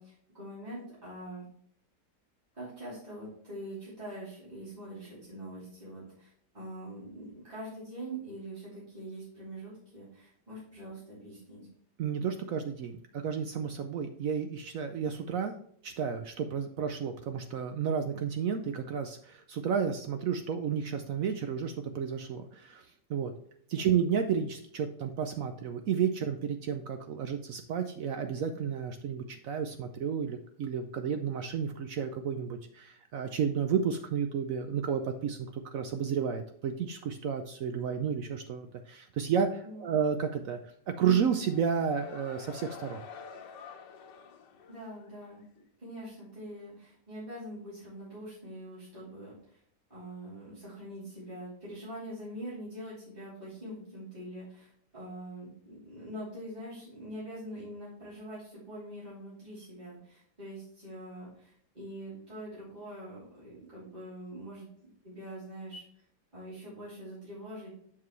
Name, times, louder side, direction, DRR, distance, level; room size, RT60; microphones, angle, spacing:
voice 1, 0.0-1.4 2.5-11.7 23.7-23.9 39.6-40.0 44.7-45.4 45.8-49.6 49.9-65.8 66.3-67.7, right 1 dB, 25° right, -9 dB, 3.2 m, -44 dB
voice 2, 12.0-15.5 15.8-22.8 23.1-23.3 23.7-40.6 40.9-43.0, right 7 dB, 65° right, 7 dB, 0.9 m, -32 dB
sound 1, 40.9-45.4, left 6 dB, 85° left, 1.6 m, -48 dB
7.5 x 6.0 x 3.1 m, 0.64 s
omnidirectional pair, 1.9 m